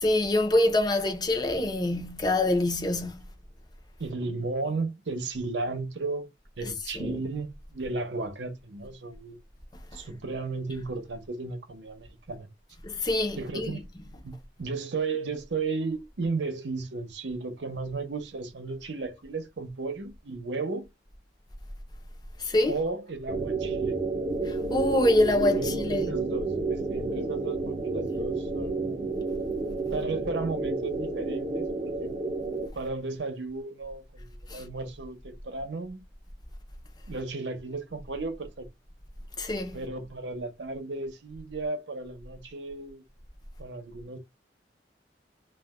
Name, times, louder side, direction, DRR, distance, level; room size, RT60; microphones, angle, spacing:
voice 1, 0.0-3.2 6.6-7.2 9.9-10.0 12.8-13.8 22.4-22.8 24.4-26.1 34.5-34.6 39.4-39.8, left 1 dB, 25° left, 0.6 m, -25 dB
voice 2, 4.0-6.3 6.6-9.4 9.9-12.5 13.3-13.9 14.2-20.9 22.7-24.0 25.5-29.0 29.9-32.1 32.7-36.0 37.1-38.7 39.7-43.0 43.6-44.2, right 3 dB, 90° right, 0.7 m, -34 dB
sound 1, 23.3-32.7, right 3 dB, 30° right, 0.6 m, -30 dB
2.4 x 2.2 x 3.5 m
head